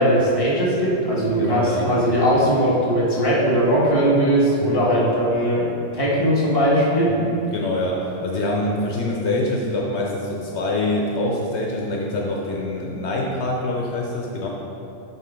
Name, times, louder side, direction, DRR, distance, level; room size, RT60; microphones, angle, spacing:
voice 1, 0.0-5.7 5.9-7.1, equal, 20° left, -7 dB, 1.5 m, -19 dB
voice 2, 1.4-1.9 4.6-4.8 7.2-14.5, left 2 dB, 70° left, -1 dB, 1.0 m, -25 dB
8.8 x 3.6 x 5.0 m, 2.9 s
omnidirectional pair, 1.2 m